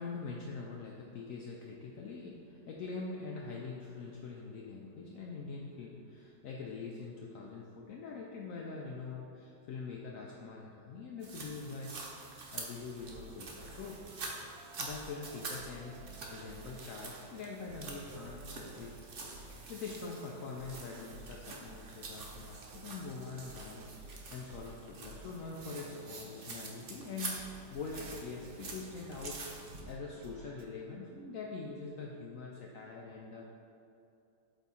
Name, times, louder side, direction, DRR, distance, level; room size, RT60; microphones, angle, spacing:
voice 1, 0.0-14.0 14.8-19.0 19.4-33.4, left 4 dB, 80° left, -1 dB, 0.7 m, -44 dB
sound 1, 11.2-29.8, right 3 dB, 55° right, 0.6 m, -47 dB
sound 2, 12.9-30.7, right 3 dB, 75° right, 1.3 m, -53 dB
8.1 x 3.5 x 4.2 m, 2.7 s
omnidirectional pair, 2.0 m